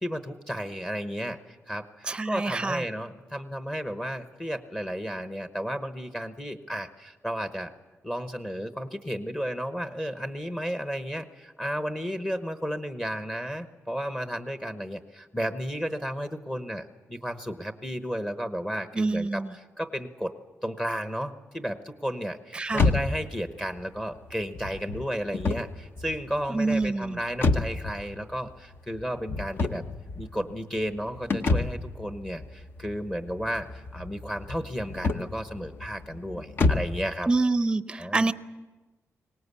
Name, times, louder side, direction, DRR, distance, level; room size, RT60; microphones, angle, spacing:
voice 1, 0.0-7.7 8.0-20.3 20.6-29.8 30.2-37.3 37.9-38.3, equal, 10° left, 7 dB, 1.0 m, -33 dB
voice 2, 2.1-2.8 18.9-19.5 22.5-22.9 26.5-27.2 37.3-38.3, right 3 dB, 20° right, 12 dB, 0.7 m, -26 dB
sound 1, 22.7-37.1, left 3 dB, 45° left, 1.1 m, -30 dB
23.5 x 19.0 x 8.3 m, 1.2 s
wide cardioid pair, 155°, 5 cm